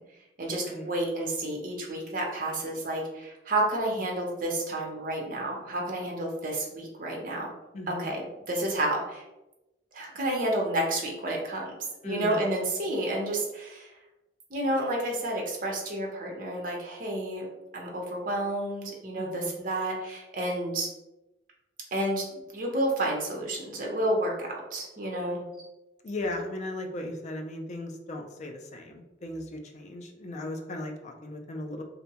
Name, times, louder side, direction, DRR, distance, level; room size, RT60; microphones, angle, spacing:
voice 1, 0.4-7.5 7.9-9.2 9.9-11.7 12.0-13.9 14.5-17.5 17.7-20.9 21.9-22.2 22.5-25.4, right 1 dB, 45° right, -1 dB, 0.7 m, -30 dB
voice 2, 7.7-8.1 12.0-12.4 19.1-19.5 26.0-31.8, left 1 dB, 40° left, 3 dB, 0.3 m, -37 dB
2.6 x 2.1 x 2.8 m, 0.97 s
head